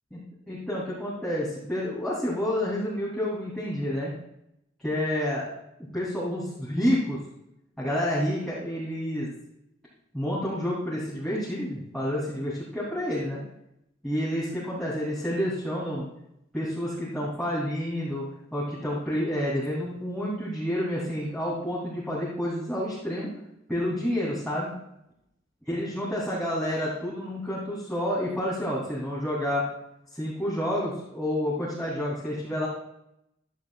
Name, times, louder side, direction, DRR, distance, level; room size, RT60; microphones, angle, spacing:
voice 1, 0.5-4.1 4.8-5.5 5.9-7.2 7.8-9.3 10.1-13.4 14.0-16.1 16.5-18.2 18.5-23.3 23.7-24.7 25.7-29.7 30.1-32.7, equal, ahead, -10 dB, 3.1 m, -29 dB
14.5 x 12.0 x 2.4 m, 0.81 s
head